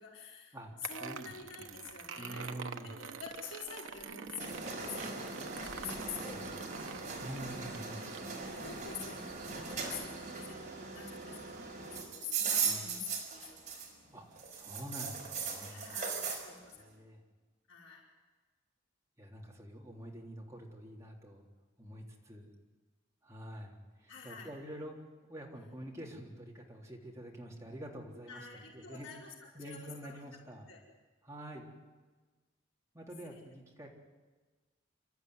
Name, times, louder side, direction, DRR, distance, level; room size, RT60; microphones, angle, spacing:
voice 1, 0.0-0.6 0.9-2.5 2.9-7.1 8.3-13.6 15.7-16.9 17.7-18.0 24.1-24.5 28.3-30.2 30.7-30.8 33.2-33.4, left 5 dB, 80° left, -3 dB, 5.1 m, -48 dB
sound 1, 0.8-10.1, right 5 dB, 75° right, 1.1 m, -47 dB
voice 2, 1.0-2.9 6.3-6.5 7.2-8.0 12.6-12.9 14.1-15.8 16.7-17.2 19.2-21.4 21.8-22.5 23.2-23.7 24.0-24.9 25.3-29.1 29.5-30.7 31.2-31.7 32.9-33.9, right 1 dB, 15° right, -2 dB, 3.5 m, -47 dB
sound 2, 4.4-14.1 14.4-16.4, right 5 dB, 40° right, 5.1 m, -39 dB
29.0 x 13.5 x 9.7 m, 1.3 s
head